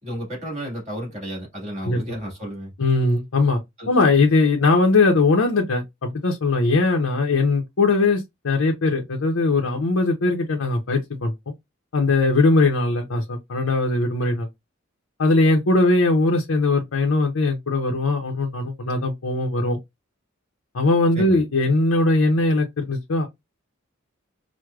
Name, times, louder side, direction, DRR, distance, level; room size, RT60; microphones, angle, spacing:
voice 1, 0.0-2.7 3.8-3.9 21.1-21.4, equal, 35° right, 1.8 m, -32 dB
voice 2, 2.8-3.6 3.9-11.5 11.9-14.5 15.2-19.8 20.7-23.3, left 3 dB, 80° left, 0.6 m, -20 dB
4.6 x 2.1 x 2.3 m
head